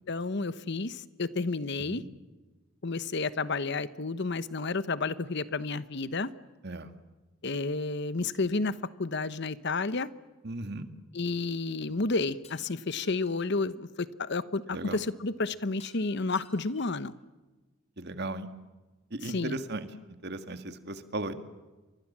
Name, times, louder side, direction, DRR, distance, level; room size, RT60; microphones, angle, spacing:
voice 1, 0.1-2.0 2.8-6.3 7.4-10.1 11.1-17.1 19.3-19.6, left 3 dB, 55° left, 15 dB, 1.0 m, -31 dB
voice 2, 10.4-10.9 14.7-15.0 18.0-18.5 19.1-21.4, right 2 dB, 55° right, 9 dB, 1.9 m, -36 dB
Shatter, 12.4-13.6 15.8-17.1, left 5 dB, 30° left, 4.0 m, -56 dB
29.0 x 24.5 x 7.4 m, 1.2 s
head